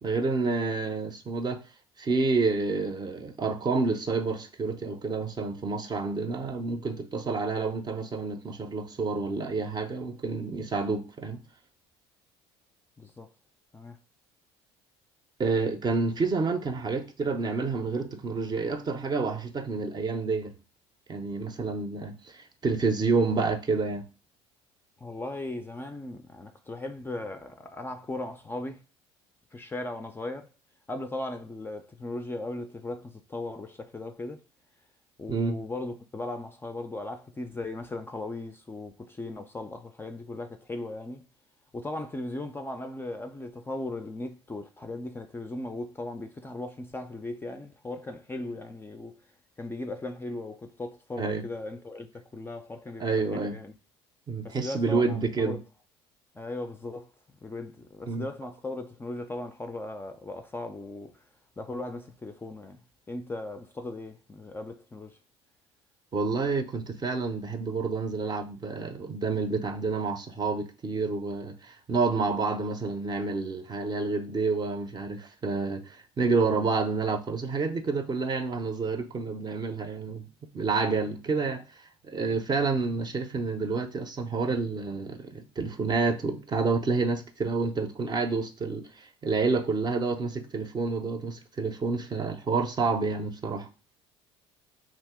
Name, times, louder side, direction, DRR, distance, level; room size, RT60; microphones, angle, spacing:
voice 1, 0.0-1.6 2.0-11.4 15.4-20.5 21.1-24.1 35.3-35.6 51.2-51.4 53.0-53.6 54.3-55.6 58.1-58.3 66.1-80.3 80.5-81.6 82.0-93.7, right 4 dB, 30° right, 0.6 m, -29 dB
voice 2, 13.0-13.3 13.7-14.0 25.0-28.8 29.5-30.5 30.9-34.4 35.2-41.2 41.7-49.2 49.6-53.1 53.3-53.8 54.4-55.6 56.3-57.1 57.4-61.2 61.6-65.2, left 2 dB, 15° left, 0.4 m, -37 dB
2.9 x 2.6 x 3.4 m
hypercardioid pair, 70°, 14 cm